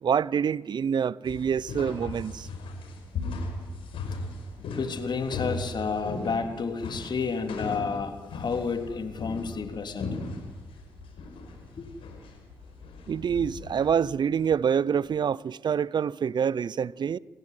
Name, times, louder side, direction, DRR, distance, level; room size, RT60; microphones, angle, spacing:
voice 1, 0.0-2.5 13.1-17.2, right 7 dB, 50° right, 0.7 m, -26 dB
sound 1, 1.2-13.9, left 3 dB, 75° left, 5.5 m, -38 dB
voice 2, 4.7-10.1 11.8-11.9, left 5 dB, 50° left, 3.2 m, -30 dB
28.5 x 15.5 x 9.4 m
hypercardioid pair, 45°, 9 cm